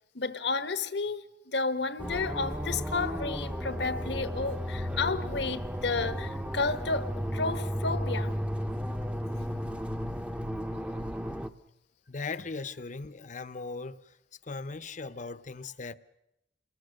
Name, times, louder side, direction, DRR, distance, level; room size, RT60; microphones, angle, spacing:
voice 1, 0.1-8.3, left 4 dB, 70° left, 1.1 m, -32 dB
sound 1, 2.0-11.5, equal, 5° right, 0.9 m, -34 dB
voice 2, 12.1-14.0 14.4-15.9, left 4 dB, 45° left, 0.8 m, -38 dB
29.0 x 21.0 x 6.5 m
head